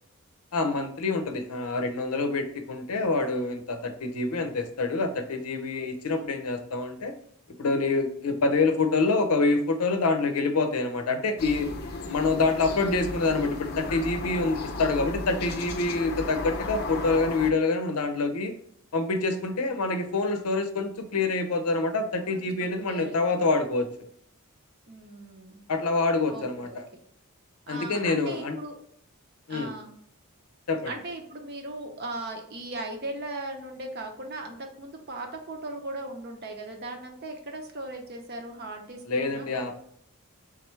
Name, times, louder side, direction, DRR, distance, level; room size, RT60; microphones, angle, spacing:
voice 1, 0.5-7.1 7.6-11.7 12.1-18.5 18.9-23.9 25.7-26.8 27.7-28.6 29.5-29.7 30.7-30.9 39.1-39.8, left 3 dB, 90° left, 6 dB, 0.6 m, -26 dB
sound 1, 11.4-17.5, left 2 dB, 45° left, 0.5 m, -35 dB
voice 2, 22.3-23.4 24.9-25.6 26.3-26.8 27.7-28.8 29.5-29.9 30.9-39.8, right 2 dB, 45° right, 3 dB, 0.7 m, -38 dB
3.6 x 3.3 x 3.1 m, 0.67 s
head